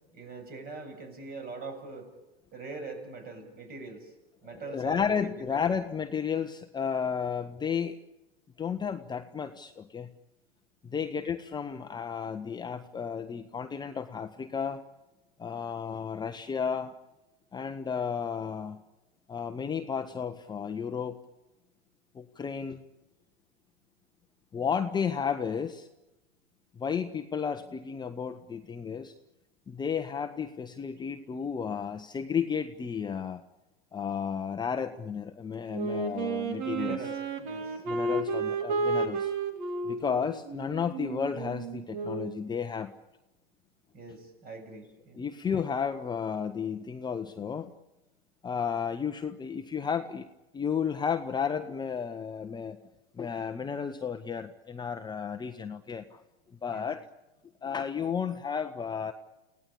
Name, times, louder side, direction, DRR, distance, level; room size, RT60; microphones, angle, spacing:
voice 1, 0.1-2.1 2.5-4.1 4.4-5.7 10.9-11.0 36.7-37.8 43.9-45.2 56.7-56.9, right 3 dB, 30° right, 7 dB, 7.5 m, -43 dB
voice 2, 4.4-8.0 8.6-10.1 10.8-14.8 15.4-16.9 17.5-18.8 19.3-21.2 22.1-22.8 24.5-25.9 26.7-29.1 29.7-33.4 33.9-37.0 37.9-39.3 39.9-42.9 45.1-47.7 48.4-52.8 53.1-56.2 56.6-57.0 57.6-59.1, left 7 dB, 15° left, 7 dB, 1.1 m, -33 dB
Wind instrument woodwind instrument, 35.7-42.4, right 3 dB, 55° right, 4.0 m, -32 dB
30.0 x 18.0 x 8.7 m, 1.0 s
hypercardioid pair, 105°, 30 cm